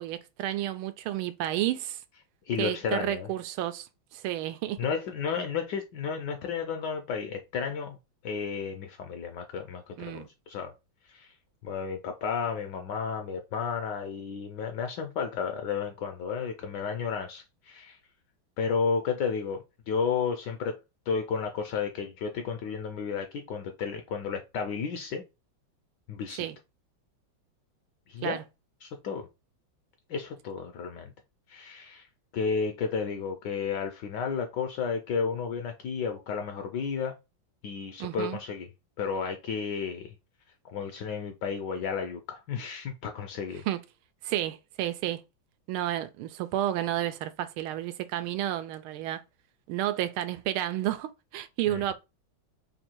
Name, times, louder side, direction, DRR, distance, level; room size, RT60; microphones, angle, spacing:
voice 1, 0.0-2.0 2.6-4.8 10.0-10.3 26.4-26.6 28.2-28.4 38.0-38.4 43.7-43.8 44.2-45.2 45.7-49.2 49.7-51.9, right 13 dB, 85° right, 1.4 m, -31 dB
voice 2, 2.5-3.3 4.8-8.0 8.2-10.7 11.1-11.3 11.6-18.0 18.6-20.8 21.1-25.2 26.1-26.5 28.1-28.4 28.8-29.3 30.1-31.1 31.5-32.0 32.3-37.1 37.6-38.7 39.0-40.1 40.7-43.6 51.7-51.8, left 6 dB, 70° left, 1.1 m, -32 dB
3.6 x 2.6 x 4.3 m
omnidirectional pair, 2.3 m